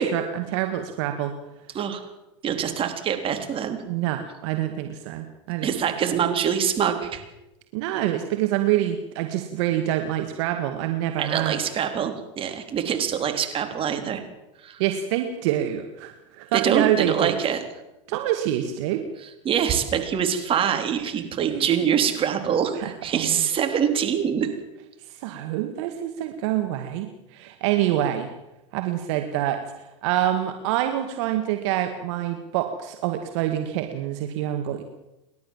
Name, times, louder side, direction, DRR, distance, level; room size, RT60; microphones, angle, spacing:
voice 1, 0.0-1.3 3.9-5.7 7.7-11.6 14.8-17.3 18.1-19.0 21.4-21.9 22.7-23.4 25.1-28.3 28.7-29.6 30.0-34.8, right 12 dB, 60° right, 6 dB, 2.2 m, -26 dB
voice 2, 2.4-3.8 5.6-7.2 11.2-14.2 14.6-14.8 16.5-17.6 19.4-24.5, right 8 dB, 35° right, 6 dB, 3.8 m, -24 dB
29.5 x 12.0 x 7.5 m, 0.93 s
hypercardioid pair, 100°, 17 cm